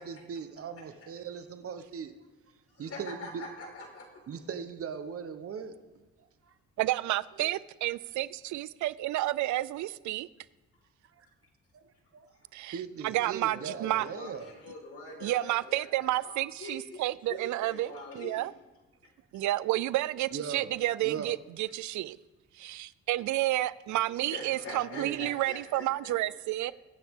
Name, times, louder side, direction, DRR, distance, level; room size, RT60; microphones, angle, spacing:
voice 1, 0.0-2.1 2.8-3.5 4.3-5.8 6.2-6.5 11.1-11.3 11.7-12.3 12.7-14.5 20.3-21.3 24.7-25.3, right 6 dB, 50° right, 1.0 m, -40 dB
voice 2, 2.8-4.0 13.1-17.0 17.3-18.5 19.3-19.5 24.3-26.7, left 2 dB, 55° left, 4.5 m, -44 dB
voice 3, 6.8-10.3 12.5-12.8 13.0-14.1 15.2-18.5 19.3-22.2 22.6-26.7, right 16 dB, 80° right, 0.5 m, -30 dB
22.0 x 9.3 x 3.7 m
cardioid pair, 115°, 29 cm